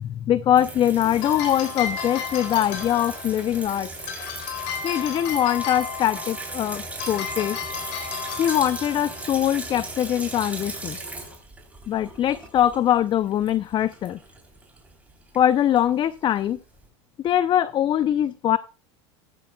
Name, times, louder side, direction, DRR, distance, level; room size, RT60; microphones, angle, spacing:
voice 1, 0.0-3.9 4.8-7.6 8.4-11.0 11.9-14.2 15.3-16.6 17.2-18.6, left 11 dB, 35° left, 15 dB, 0.5 m, -22 dB
sound 1, 0.5-16.9, right 3 dB, 10° right, 3.6 m, -38 dB
sound 2, 0.9-11.3, left 7 dB, 60° left, 3.8 m, -34 dB
14.0 x 14.0 x 2.3 m, 0.32 s
supercardioid pair, 115°, 15 cm